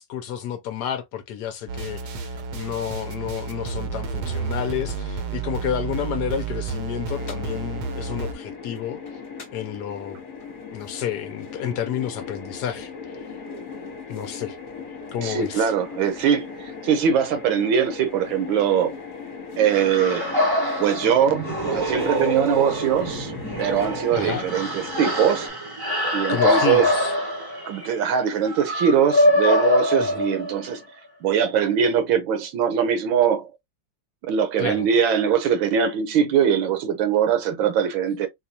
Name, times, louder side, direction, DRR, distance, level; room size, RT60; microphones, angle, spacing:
voice 1, 0.0-9.0 9.5-10.2 10.7-12.9 14.1-14.6 15.1-15.7 24.1-24.5 26.3-27.1 30.0-30.2 34.6-34.9, left 9 dB, 70° left, 1.0 m, -30 dB
sound 1, 1.7-8.3, right 4 dB, 65° right, 1.1 m, -31 dB
sound 2, 7.1-25.5, left 5 dB, 45° left, 1.3 m, -38 dB
voice 2, 15.2-18.9 19.6-20.3 20.8-23.3 23.6-25.5 26.1-26.9 27.7-30.8 31.2-33.5 34.3-38.3, right 8 dB, 85° right, 1.6 m, -22 dB
sound 3, 19.7-30.8, left 1 dB, 25° right, 0.5 m, -24 dB
4.1 x 2.3 x 2.7 m
omnidirectional pair, 2.1 m